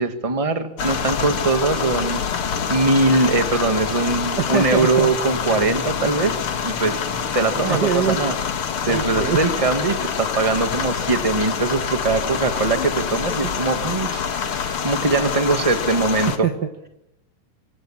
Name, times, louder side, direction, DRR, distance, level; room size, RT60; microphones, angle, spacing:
voice 1, 0.0-2.2 2.7-6.3 6.6-7.0 7.3-8.3 8.8-16.5, right 3 dB, 20° right, 7 dB, 0.9 m, -21 dB
sound 1, 0.8-16.4, left 7 dB, 50° left, 1.9 m, -26 dB
voice 2, 4.4-5.1 7.5-8.2 8.9-9.4 16.4-16.9, right 7 dB, 80° right, 6 dB, 0.9 m, -23 dB
25.5 x 25.5 x 7.5 m, 0.84 s
omnidirectional pair, 4.1 m